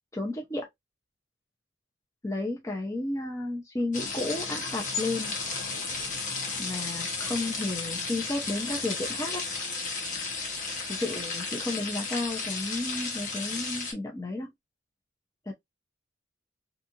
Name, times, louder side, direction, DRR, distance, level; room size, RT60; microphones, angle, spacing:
voice 1, 0.1-0.7 2.2-5.3 6.6-9.5 10.9-14.5 15.5-15.6, left 2 dB, 15° left, 0.5 m, -32 dB
sound 1, 3.9-13.9, left 4 dB, 40° left, 0.8 m, -33 dB
2.7 x 2.4 x 2.8 m
head